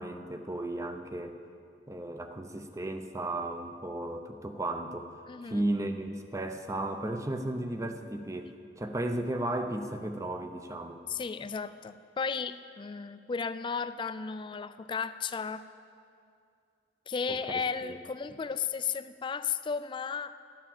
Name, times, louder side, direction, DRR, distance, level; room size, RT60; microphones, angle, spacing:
voice 1, 0.0-1.4 1.9-5.1 5.4-11.0 17.3-18.0, right 1 dB, 15° right, 7 dB, 0.7 m, -35 dB
voice 2, 5.3-5.6 11.1-15.6 17.1-20.3, left 5 dB, 25° left, 12 dB, 0.3 m, -34 dB
12.5 x 8.9 x 7.2 m, 2.4 s
head